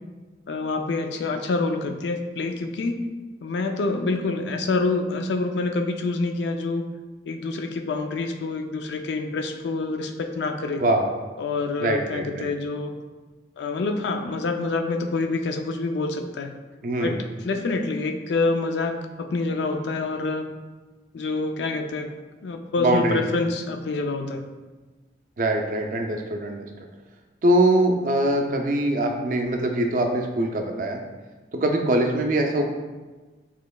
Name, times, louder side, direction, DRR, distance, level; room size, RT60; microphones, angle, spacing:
voice 1, 0.5-3.1 3.4-6.8 7.3-10.8 11.4-12.9 13.6-16.5 17.0-20.5 21.1-22.1 22.4-24.4, left 3 dB, 75° left, 6 dB, 0.4 m, -27 dB
voice 2, 11.8-12.5 16.8-17.2 22.8-23.2 25.4-26.6 27.4-31.0 31.5-32.6, right 1 dB, 45° right, 3 dB, 0.4 m, -22 dB
6.2 x 2.9 x 2.3 m, 1.3 s
head